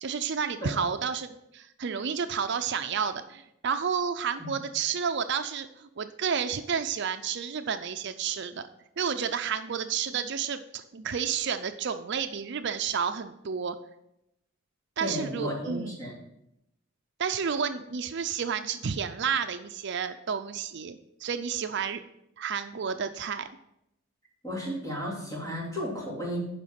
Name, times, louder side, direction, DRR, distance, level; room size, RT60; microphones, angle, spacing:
voice 1, 0.0-8.7 9.0-13.8 15.0-15.9 17.2-22.0 22.4-23.5, right 6 dB, 60° right, 9 dB, 0.5 m, -31 dB
voice 2, 15.0-16.1 24.4-26.4, equal, 15° left, -5 dB, 3.4 m, -33 dB
11.0 x 5.1 x 5.7 m, 0.82 s
head